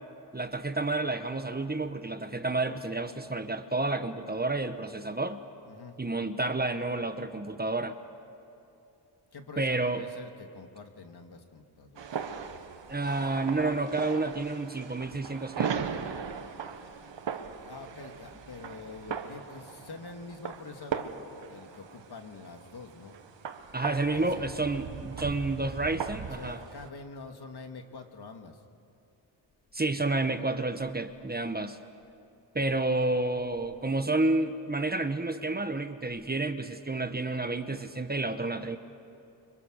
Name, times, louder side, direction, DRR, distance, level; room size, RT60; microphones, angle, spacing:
voice 1, 0.3-5.4 6.0-8.0 9.6-10.1 12.9-15.7 23.7-26.6 29.7-31.8 32.5-38.8, right 2 dB, 20° right, 8 dB, 1.3 m, -30 dB
voice 2, 5.7-6.0 9.3-12.2 17.3-23.1 24.0-24.5 26.1-28.6, left 4 dB, 60° left, 5 dB, 2.4 m, -46 dB
sound 1, 12.0-26.9, right 7 dB, 70° right, 1.7 m, -38 dB
30.0 x 25.5 x 6.6 m, 2.8 s
cardioid pair, 75°, 45 cm